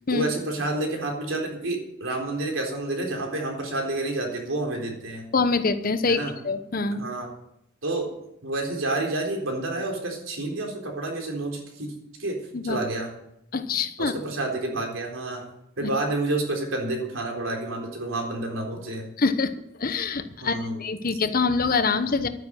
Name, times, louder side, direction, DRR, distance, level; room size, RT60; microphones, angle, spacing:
voice 1, 0.0-5.3 6.1-6.3 7.0-7.3 7.8-8.1 8.4-11.9 12.2-12.4 12.6-13.1 14.0-15.5 15.8-19.0 20.4-20.7, right 2 dB, 80° right, 1 dB, 3.8 m, -29 dB
voice 2, 5.3-7.0 12.5-12.8 13.5-14.1 15.8-15.9 19.2-19.5 19.8-22.3, left 4 dB, 45° left, 10 dB, 1.0 m, -25 dB
12.0 x 9.7 x 7.7 m, 0.80 s
head